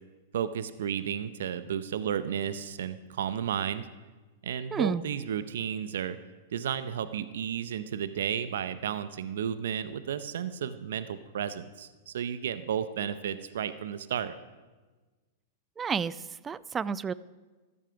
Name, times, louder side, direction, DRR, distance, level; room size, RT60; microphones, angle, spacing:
voice 1, 0.3-3.9 4.4-6.2 6.5-14.3, right 8 dB, 75° right, 13 dB, 0.7 m, -33 dB
voice 2, 4.7-5.0 15.8-16.1 16.4-17.1, right 6 dB, 20° right, 19 dB, 0.4 m, -30 dB
13.0 x 11.0 x 5.8 m, 1.3 s
hypercardioid pair, 115°, 0 cm